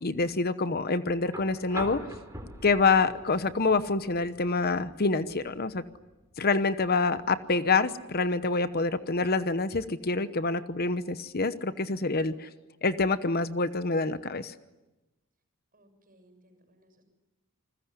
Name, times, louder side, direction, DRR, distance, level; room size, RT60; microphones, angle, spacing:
voice 1, 0.0-2.1 2.6-5.8 6.4-12.5 12.8-14.5, left 3 dB, 45° left, 12 dB, 0.9 m, -26 dB
sound 1, 1.3-9.3 10.7-10.8, right 1 dB, 15° right, 3.8 m, -45 dB
voice 2, 15.7-17.0, right 1 dB, 40° right, 7 dB, 6.9 m, -62 dB
28.5 x 20.5 x 9.8 m, 1.0 s
head